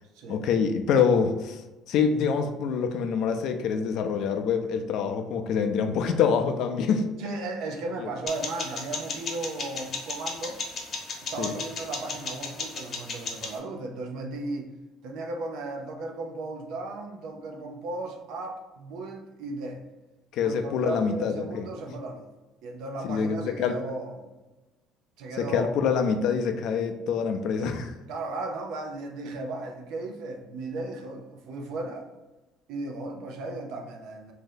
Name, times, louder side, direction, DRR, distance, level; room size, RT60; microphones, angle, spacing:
voice 1, 0.3-1.6 1.9-7.1 8.0-8.1 11.4-11.5 20.3-21.7 23.1-23.8 25.4-27.9, left 6 dB, 60° left, 0.4 m, -25 dB
voice 2, 7.2-10.6 11.2-14.7 15.0-19.8 20.4-22.3 22.6-24.4 25.2-26.0 28.1-32.1 32.7-34.3, right 2 dB, 75° right, 0.6 m, -36 dB
sound 1, 8.3-13.6, left 4 dB, 40° left, 0.8 m, -35 dB
3.1 x 2.7 x 3.8 m
cardioid pair, 145°, 0 cm